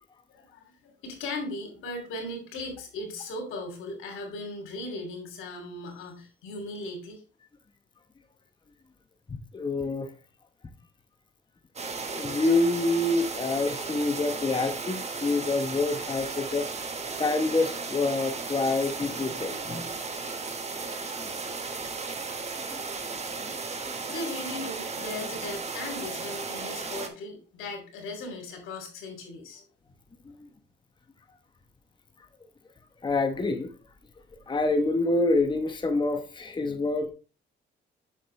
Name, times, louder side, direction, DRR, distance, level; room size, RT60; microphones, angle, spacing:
voice 1, 0.3-7.2 24.1-29.6, left 2 dB, 90° left, 3 dB, 2.7 m, -38 dB
voice 2, 9.3-10.1 12.1-16.7 17.2-19.9 21.2-21.3 22.7-22.8 30.2-30.5 33.0-33.7 34.5-37.1, left 2 dB, 25° left, 6 dB, 1.0 m, -27 dB
sound 1, 11.8-27.1, right 4 dB, 35° right, 1.3 m, -35 dB
7.3 x 6.5 x 3.2 m, 0.35 s
cardioid pair, 90°, 20 cm